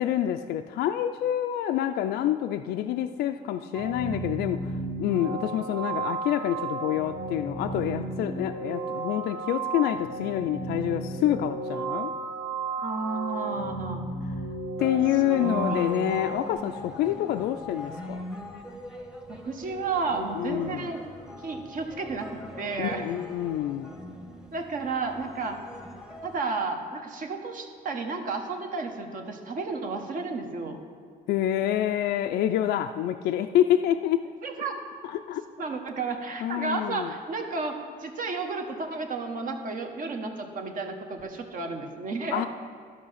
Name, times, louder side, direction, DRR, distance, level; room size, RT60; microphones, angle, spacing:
voice 1, 0.0-12.1 14.8-18.2 20.3-20.9 22.8-23.9 31.3-34.2 35.1-35.4 36.4-37.1 42.3-42.5, left 11 dB, 75° left, 7 dB, 0.4 m, -27 dB
sound 1, 3.7-16.5, right 3 dB, 90° right, 1.9 m, -33 dB
voice 2, 12.8-14.0 15.3-15.4 15.7-16.2 19.3-21.0 21.4-23.1 24.5-25.6 26.2-30.8 34.4-34.8 35.6-42.4, right 4 dB, 50° right, 4 dB, 1.2 m, -32 dB
sound 2, 14.8-26.4, left 1 dB, 5° right, 1.0 m, -41 dB
12.5 x 5.4 x 5.7 m, 2.2 s
cardioid pair, 110°, 17 cm